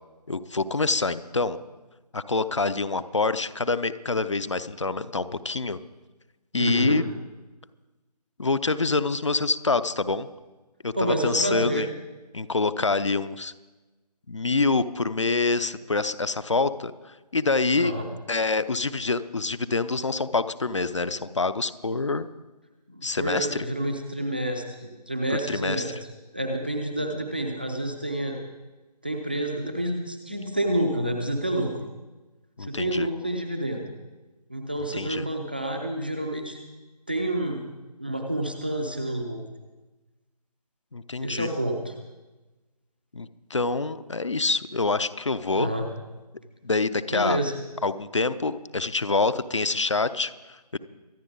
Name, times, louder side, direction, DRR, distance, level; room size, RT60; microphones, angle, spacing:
voice 1, 0.3-1.6 2.1-5.8 6.5-7.0 8.4-10.3 10.8-11.9 12.3-13.5 14.3-16.9 17.3-17.9 18.3-22.3 23.0-23.7 25.5-25.9 32.6-33.1 34.9-35.2 40.9-41.5 43.1-45.7 46.6-47.4 47.8-50.8, left 3 dB, 45° left, 14 dB, 0.7 m, -26 dB
voice 2, 6.6-7.0 10.9-11.9 17.8-18.1 22.9-26.0 26.3-28.4 29.0-31.9 32.6-33.9 34.5-36.6 37.1-37.6 38.0-39.4 41.2-41.9 45.5-45.9 47.1-47.6, right 1 dB, 15° right, 3 dB, 0.6 m, -28 dB
24.0 x 10.0 x 3.9 m, 1.2 s
figure-of-eight pair, 165°, 21 cm